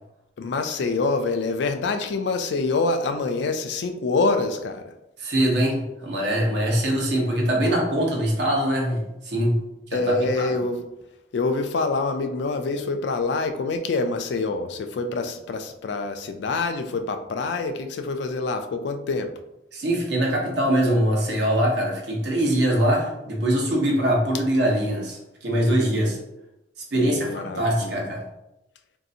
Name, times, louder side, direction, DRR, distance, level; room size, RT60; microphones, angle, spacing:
voice 1, 0.4-4.9 9.9-10.8 11.3-19.3 26.9-28.0, left 3 dB, 65° left, 7 dB, 0.3 m, -26 dB
voice 2, 5.2-9.6 9.9-10.0 10.4-10.5 19.7-26.2 26.9-28.2, right 1 dB, 65° right, -1 dB, 0.8 m, -23 dB
3.1 x 2.6 x 2.7 m, 0.90 s
head